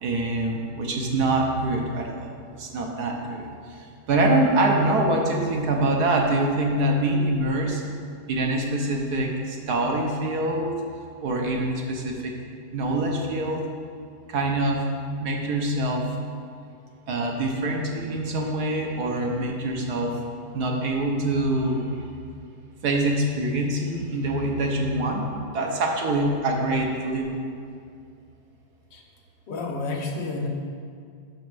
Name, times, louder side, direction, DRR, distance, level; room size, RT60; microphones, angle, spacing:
voice 1, 0.0-7.8 8.3-10.9 11.2-12.3 12.7-13.6 14.3-14.9 15.2-16.1 17.1-20.2 20.5-22.0 22.8-27.4, right 2 dB, 65° right, 1 dB, 1.4 m, -25 dB
voice 2, 29.5-30.5, left 3 dB, 85° left, 1 dB, 1.7 m, -30 dB
6.2 x 5.1 x 6.1 m, 2.3 s
omnidirectional pair, 1.9 m